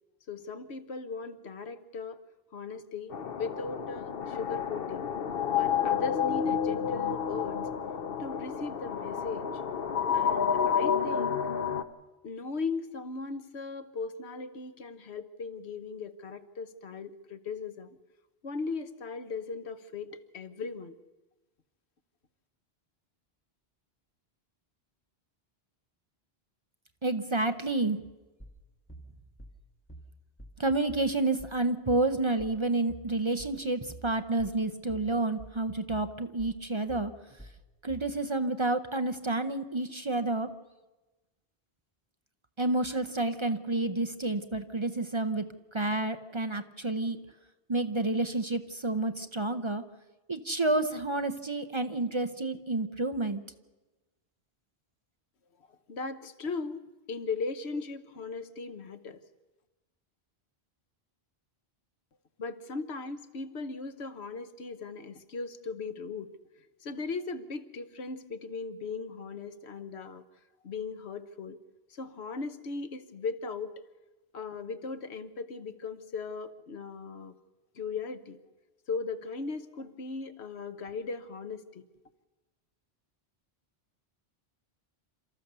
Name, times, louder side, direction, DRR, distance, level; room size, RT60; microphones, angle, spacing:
voice 1, 0.3-2.2 2.5-5.1 5.5-7.6 8.2-9.6 10.1-11.4 12.2-18.0 18.4-21.0 55.7-56.8 57.1-59.2 62.4-66.3 66.8-70.2 70.6-71.6 71.9-73.7 74.3-77.3 77.7-78.4 78.9-81.9, left 4 dB, 80° left, 11 dB, 1.3 m, -38 dB
sound 1, 3.1-11.8, left 7 dB, 65° left, 1.1 m, -30 dB
voice 2, 27.0-28.0 30.6-37.1 37.8-40.5 42.6-45.4 45.7-47.2 47.7-49.8 50.3-53.4, right 2 dB, 30° right, 8 dB, 0.7 m, -29 dB
sound 2, 28.4-38.2, right 1 dB, 10° left, 1.5 m, -49 dB
28.5 x 13.5 x 6.8 m, 1.1 s
omnidirectional pair, 1.1 m